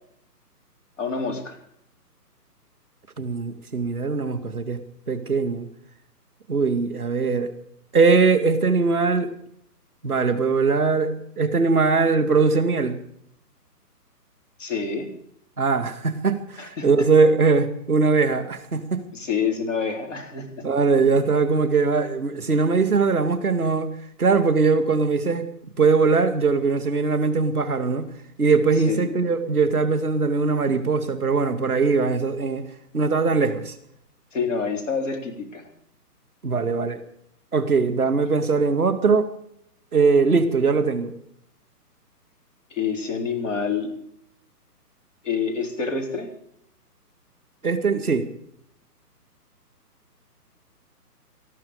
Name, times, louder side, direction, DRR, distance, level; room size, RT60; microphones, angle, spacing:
voice 1, 1.0-1.6 14.6-15.1 16.6-16.9 19.1-20.7 28.9-29.2 34.3-35.7 42.7-43.9 45.2-46.3, left 5 dB, 50° left, 4 dB, 4.0 m, -27 dB
voice 2, 3.2-4.8 5.1-5.7 6.5-7.5 7.9-9.3 10.0-13.0 15.6-19.0 20.6-23.9 24.2-25.5 25.8-28.1 28.4-32.6 32.9-33.7 36.4-37.0 37.5-39.3 39.9-41.1 47.6-48.2, right 4 dB, 5° left, -10 dB, 1.0 m, -21 dB
20.0 x 13.5 x 5.0 m, 0.70 s
hypercardioid pair, 175°, 48 cm